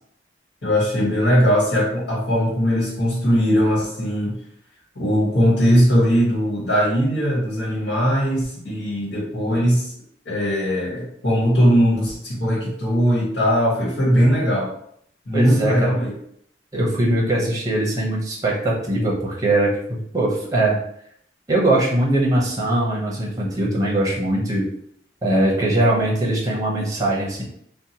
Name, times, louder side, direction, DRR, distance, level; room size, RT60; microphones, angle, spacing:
voice 1, 0.6-4.4 4.9-9.9 10.2-14.7 15.3-16.1, equal, 80° left, -6 dB, 1.2 m, -19 dB
voice 2, 15.3-15.9 16.7-20.8 21.5-24.6 25.2-27.4, right 1 dB, 20° right, -4 dB, 0.7 m, -21 dB
2.7 x 2.1 x 2.8 m, 0.69 s
head